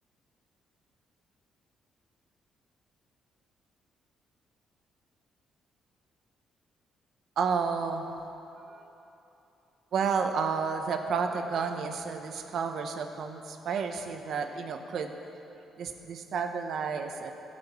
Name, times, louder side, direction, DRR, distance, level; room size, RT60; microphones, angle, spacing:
voice 1, 7.4-8.1 8.7-8.8 9.9-15.1 15.8-17.3, right 5 dB, 65° right, 6 dB, 0.9 m, -31 dB
14.5 x 5.2 x 8.6 m, 3.0 s
cardioid pair, 90°, 0 cm